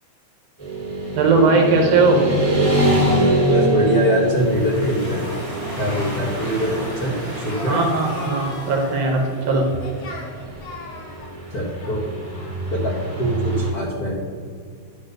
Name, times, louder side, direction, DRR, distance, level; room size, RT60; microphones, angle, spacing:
Motorcycle / Traffic noise roadway noise, 0.6-13.7, right 1 dB, 15° right, 1.9 m, -25 dB
voice 1, 1.2-2.2 7.7-9.7, right 3 dB, 70° right, 2 dB, 1.8 m, -18 dB
voice 2, 3.5-5.2 5.8-7.8 11.5-12.1 12.7-12.9 13.2-14.2, equal, 80° left, -2 dB, 0.8 m, -23 dB
Domestic sounds home sounds, 4.1-9.7, equal, 15° left, 1.1 m, -38 dB
Singing, 5.0-13.4, left 3 dB, 55° left, 1.6 m, -40 dB
10.5 x 4.1 x 6.5 m, 2.1 s
omnidirectional pair, 3.4 m